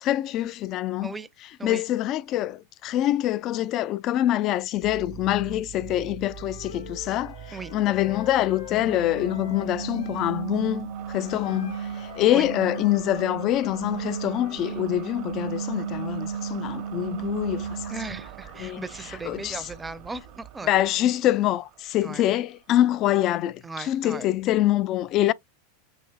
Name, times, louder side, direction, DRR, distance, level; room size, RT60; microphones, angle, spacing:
voice 1, 0.0-1.1 1.6-17.9 18.6-18.8 19.3-19.6 20.7-25.3, left 13 dB, 40° left, 0.3 m, -25 dB
sound 1, 4.8-23.3, right 10 dB, 50° right, 0.9 m, -45 dB
Wind instrument woodwind instrument, 6.2-10.3 11.2-14.6, left 12 dB, 60° left, 0.9 m, -44 dB
sound 2, 8.7-18.4, right 7 dB, 70° right, 0.5 m, -34 dB
voice 2, 17.9-20.7 22.0-22.2 23.6-24.3, right 3 dB, 15° right, 0.6 m, -37 dB
5.7 x 3.0 x 2.3 m
figure-of-eight pair, 90°, 0 cm